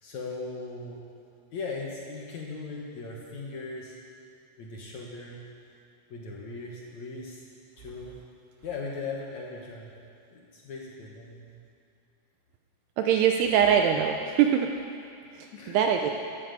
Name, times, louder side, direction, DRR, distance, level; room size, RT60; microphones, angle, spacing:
voice 1, 0.0-1.0 1.5-4.0 4.6-5.4 6.1-7.4 7.8-8.2 8.6-9.9 10.3-11.5 15.5-15.8, left 3 dB, 65° left, -2 dB, 1.9 m, -38 dB
voice 2, 13.0-14.7 15.7-16.1, right 8 dB, 80° right, 3 dB, 2.5 m, -22 dB
12.5 x 12.0 x 8.1 m, 2.5 s
omnidirectional pair, 5.3 m